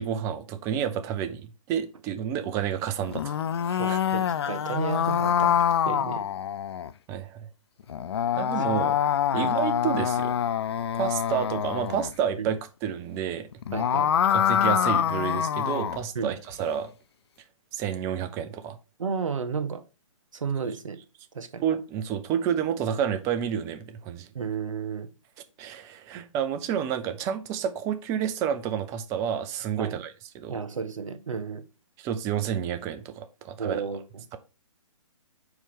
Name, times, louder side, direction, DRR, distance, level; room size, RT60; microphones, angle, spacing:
voice 1, 0.0-4.0 7.1-7.5 8.4-9.0 9.3-10.3 11.0-13.5 14.3-16.9 17.7-18.8 21.6-24.3 25.6-30.6 32.0-33.8, right 8 dB, 15° right, 0.5 m, -30 dB
sound 1, 3.0-6.9 7.9-12.1 13.5-16.0, left 9 dB, 50° left, 0.4 m, -25 dB
voice 2, 3.8-6.2 9.3-9.5 12.4-12.5 13.7-14.1 16.1-16.3 19.0-19.8 20.3-21.0 21.3-21.7 24.3-25.1 29.8-30.0 30.5-31.6 33.6-34.2, right 5 dB, 70° right, 0.9 m, -32 dB
4.7 x 4.3 x 4.9 m
figure-of-eight pair, 130°, 17 cm